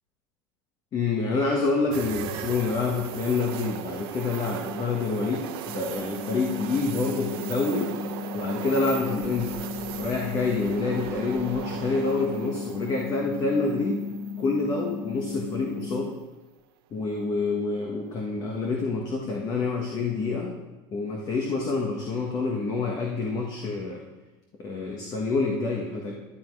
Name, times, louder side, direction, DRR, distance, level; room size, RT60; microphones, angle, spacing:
voice 1, 0.9-7.9 8.3-9.6 10.0-14.0 14.4-16.1 16.9-20.5 20.9-24.0 24.6-26.1, left 3 dB, 35° left, 0 dB, 1.6 m, -27 dB
sound 1, 1.9-14.9 15.3-15.4 17.9-18.3, right 10 dB, 85° right, 1.0 m, -38 dB
sound 2, 5.9-15.9, left 5 dB, 70° left, 4.4 m, -36 dB
12.0 x 9.7 x 4.9 m, 1.2 s
supercardioid pair, 140°, 12 cm